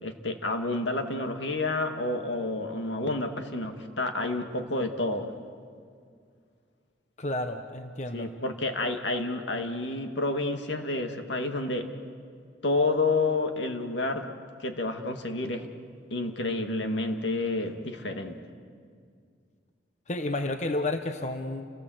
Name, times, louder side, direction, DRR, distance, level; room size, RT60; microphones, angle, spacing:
voice 1, 0.0-5.3 8.1-11.9 12.6-14.3 14.6-15.7 16.1-18.4, left 2 dB, 80° left, 5 dB, 2.0 m, -29 dB
voice 2, 7.2-8.3 20.1-21.7, left 2 dB, 40° left, 6 dB, 1.0 m, -31 dB
30.0 x 18.0 x 7.9 m, 2.2 s
head